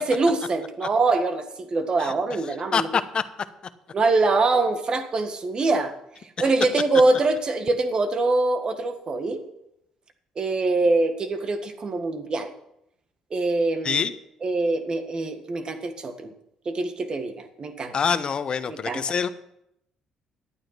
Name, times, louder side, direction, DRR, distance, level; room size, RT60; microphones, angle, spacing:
voice 1, 0.0-2.9 3.9-5.9 6.4-9.4 10.3-12.5 13.3-14.0 14.4-16.3 16.6-17.9 18.7-19.0, right 3 dB, 45° right, 8 dB, 1.7 m, -24 dB
voice 2, 2.7-3.2 6.4-6.5 13.8-14.1 17.9-19.3, left 6 dB, 45° left, 13 dB, 0.9 m, -25 dB
11.5 x 9.0 x 5.9 m, 0.79 s
supercardioid pair, 65°, 2 cm